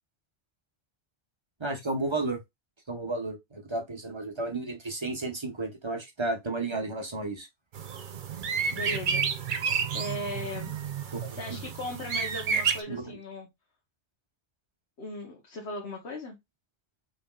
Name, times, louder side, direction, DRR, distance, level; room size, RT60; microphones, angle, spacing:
voice 1, 1.6-2.4 2.9-7.5 11.1-11.7 12.9-13.2, right 2 dB, 30° right, 1.1 m, -33 dB
sound 1, 7.7-12.8, right 6 dB, 55° right, 0.8 m, -30 dB
voice 2, 8.7-9.2 9.9-10.7 11.3-13.5 15.0-16.4, left 1 dB, 85° left, 1.4 m, -37 dB
5.8 x 3.5 x 2.3 m
omnidirectional pair, 1.1 m